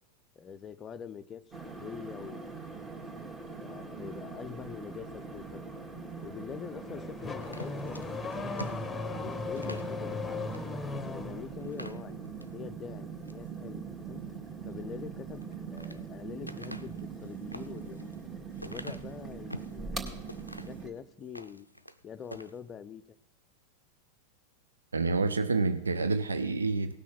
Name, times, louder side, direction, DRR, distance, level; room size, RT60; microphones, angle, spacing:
voice 1, 0.4-2.6 3.6-5.7 6.2-10.6 11.0-12.2 12.5-14.2 14.6-15.4 15.7-18.2 18.6-20.2 20.7-21.7 22.0-23.0, left 7 dB, 25° left, 0.5 m, -44 dB
kettle D mon semi anechoic, 1.5-20.9, right 5 dB, 20° right, 1.8 m, -42 dB
Car / Accelerating revving vroom, 6.5-11.5, left 3 dB, 10° left, 1.1 m, -37 dB
sound 1, 7.4-9.9 10.5-10.7 11.0-11.1 11.6-12.5 13.0-13.5 15.3-16.0 16.4-19.8 20.3-20.8 21.2-22.0 22.2-22.5, equal, 90° left, 0.4 m, -45 dB
voice 2, 24.9-26.9, right 3 dB, 75° right, 0.5 m, -28 dB
17.5 x 6.2 x 5.7 m
figure-of-eight pair, 90°, 0 cm